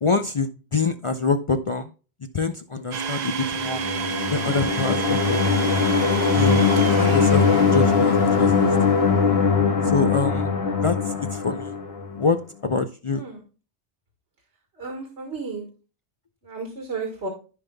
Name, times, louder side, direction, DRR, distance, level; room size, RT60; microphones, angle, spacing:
voice 1, 0.0-1.9 2.3-3.8 4.3-5.9 6.3-8.9 9.8-10.5 10.8-11.7 12.2-13.2, left 4 dB, 45° left, 8 dB, 0.4 m, -26 dB
Domestic sounds home sounds, 2.9-8.4, right 5 dB, 50° right, 0.6 m, -30 dB
sound 1, 3.5-12.2, left 5 dB, 60° left, 1.5 m, -21 dB
voice 2, 14.8-15.7 16.4-17.3, right 4 dB, 85° right, 2 dB, 1.9 m, -33 dB
14.0 x 5.2 x 2.2 m, 0.35 s
omnidirectional pair, 1.1 m